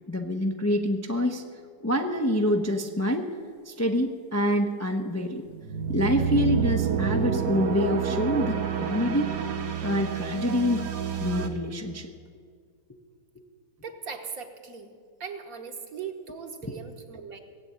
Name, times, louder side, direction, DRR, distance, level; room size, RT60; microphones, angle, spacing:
voice 1, 0.1-1.4 1.8-3.3 3.6-5.5 5.9-9.3 9.8-10.9 11.2-12.1, left 1 dB, 20° left, 3 dB, 0.4 m, -26 dB
sound 1, 5.5-11.5, right 7 dB, 75° right, 1.7 m, -28 dB
voice 2, 13.8-14.9 15.2-17.4, right 6 dB, 55° right, 5 dB, 1.6 m, -39 dB
17.0 x 8.1 x 8.7 m, 2.1 s
omnidirectional pair, 1.8 m